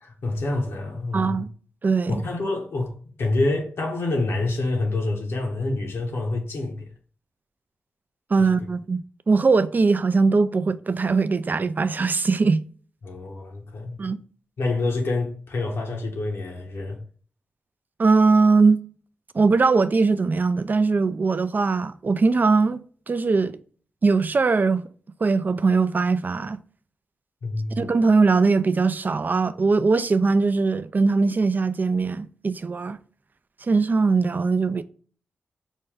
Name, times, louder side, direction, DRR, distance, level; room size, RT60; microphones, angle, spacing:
voice 1, 0.0-1.4 2.1-2.9 3.2-6.9 8.4-8.5 13.0-14.0 14.6-17.0 27.4-27.8, left 2 dB, 75° left, 1.0 m, -27 dB
voice 2, 1.1-1.5 1.8-2.2 8.3-12.6 14.0-14.2 18.0-18.8 19.3-22.8 23.1-23.6 24.0-24.9 25.2-26.6 27.8-33.0 33.7-34.8, right 4 dB, 45° right, 0.4 m, -20 dB
5.3 x 2.3 x 3.6 m
cardioid pair, 50°, 4 cm